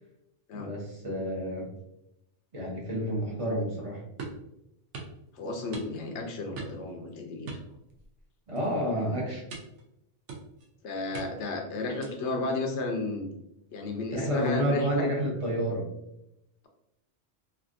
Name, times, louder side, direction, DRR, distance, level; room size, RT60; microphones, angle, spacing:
voice 1, 0.5-1.7 2.5-4.0 8.5-9.4 14.1-15.9, equal, 30° right, -3 dB, 0.8 m, -30 dB
sound 1, 4.2-4.5 4.9-5.2 5.7-6.2 6.6-6.9 7.5-8.2 8.6-8.8 9.5-9.8 10.3-10.7 11.1-11.5 12.0-12.3, right 4 dB, 75° right, 0.9 m, -41 dB
voice 2, 5.3-7.6 10.8-13.3 13.7-15.1, left 2 dB, 75° left, 4 dB, 0.9 m, -33 dB
3.3 x 2.4 x 2.5 m, 0.84 s
omnidirectional pair, 1.2 m